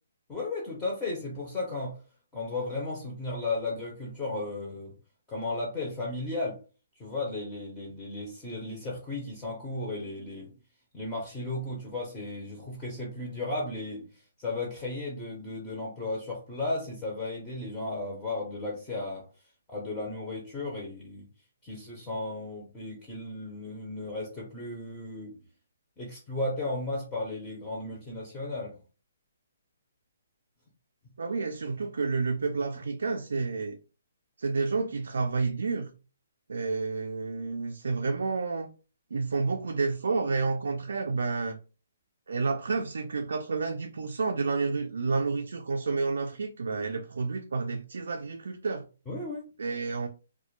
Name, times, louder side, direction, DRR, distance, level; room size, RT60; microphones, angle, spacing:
voice 1, 0.3-2.0 2.3-4.9 5.3-6.6 7.0-10.5 10.9-19.3 19.7-21.3 21.6-25.3 26.0-28.8 49.1-49.4, left 2 dB, 10° left, 0.5 m, -35 dB
voice 2, 31.2-33.8 34.4-35.9 36.5-38.7 39.1-41.6 42.3-48.8 49.6-50.1, right 4 dB, 80° right, 0.3 m, -30 dB
2.1 x 2.1 x 2.9 m
hypercardioid pair, 175°, 0 cm